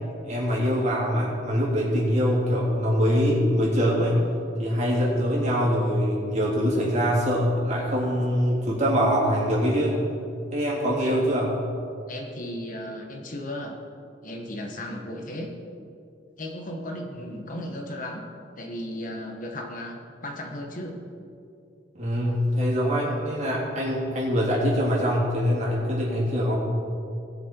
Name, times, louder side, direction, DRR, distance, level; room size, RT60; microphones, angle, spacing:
voice 1, 0.2-4.2 4.6-10.0 10.5-11.5 21.9-26.6, equal, 40° right, -5 dB, 3.4 m, -23 dB
voice 2, 10.8-11.2 12.1-13.8 14.2-15.5 16.4-18.2 18.6-21.0, left 1 dB, 50° left, 2 dB, 1.3 m, -35 dB
19.5 x 6.7 x 4.5 m, 2.5 s
head